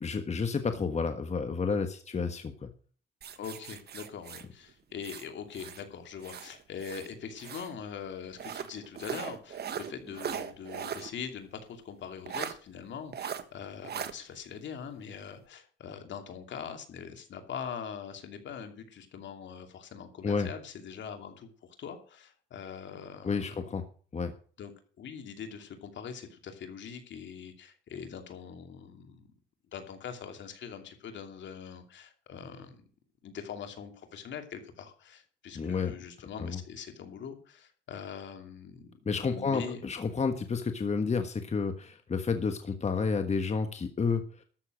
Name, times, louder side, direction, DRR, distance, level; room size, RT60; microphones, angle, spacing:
voice 1, 0.0-2.7 20.2-20.5 23.2-23.8 24.1-24.3 35.5-36.0 36.4-36.6 39.0-44.4, left 5 dB, 35° left, 8 dB, 1.4 m, -30 dB
sound 1, 3.2-5.8 6.2-7.7 8.4-11.1 11.4-11.5 12.3-12.5 13.1-13.4 13.8-14.1, right 8 dB, 55° right, 1.5 m, -39 dB
voice 2, 3.4-21.5 21.8-23.6 24.6-24.7 25.0-29.3 29.7-32.8 33.2-38.9 39.3-39.8, left 7 dB, 65° left, 6 dB, 2.7 m, -42 dB
13.5 x 7.1 x 6.4 m, 0.42 s
cardioid pair, 90°, 20 cm